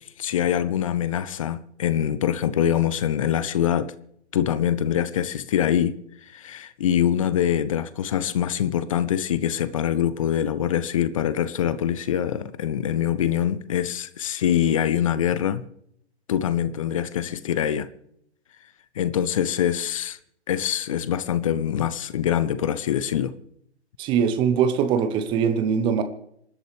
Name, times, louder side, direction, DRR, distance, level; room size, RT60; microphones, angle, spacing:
voice 1, 0.2-3.9 4.3-6.0 6.2-15.6 16.3-17.9 19.0-20.2 20.5-23.3, left 10 dB, 30° left, 0.7 m, -24 dB
voice 2, 24.0-26.0, right 7 dB, 15° right, 0.9 m, -22 dB
27.0 x 12.0 x 3.3 m
figure-of-eight pair, 125°, 34 cm